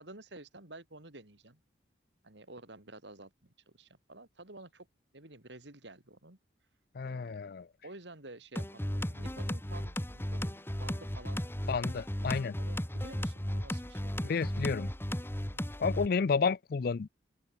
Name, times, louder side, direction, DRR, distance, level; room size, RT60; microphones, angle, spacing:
voice 1, 0.0-1.6 2.2-4.9 5.1-6.4 7.0-7.4 7.8-11.5 11.7-12.0 12.6-14.4 15.5-15.7, right 2 dB, 70° right, 3.8 m, -51 dB
voice 2, 7.0-7.7 11.7-12.5 14.2-14.9 15.8-17.1, left 5 dB, 55° left, 0.4 m, -31 dB
sound 1, 8.6-16.1, equal, 15° left, 1.6 m, -35 dB
open air
head